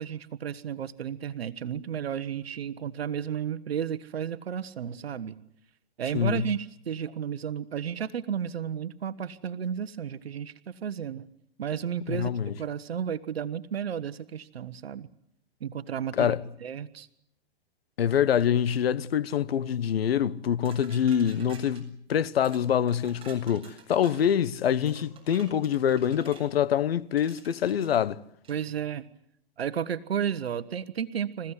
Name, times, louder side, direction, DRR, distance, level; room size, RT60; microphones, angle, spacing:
voice 1, 0.0-5.3 6.0-11.2 11.6-12.3 12.6-15.1 15.6-16.3 16.6-17.1 28.5-29.0 29.6-31.5, right 8 dB, 85° right, 1.2 m, -33 dB
voice 2, 6.1-6.4 12.1-12.5 16.2-16.4 18.0-28.2, left 9 dB, 75° left, 1.2 m, -25 dB
sound 1, 20.7-21.8 22.4-22.6 22.9-24.3 24.9-26.5 27.2-27.9 28.4-28.7, right 6 dB, 20° right, 7.2 m, -51 dB
27.0 x 16.0 x 9.8 m
hypercardioid pair, 135°, 30 cm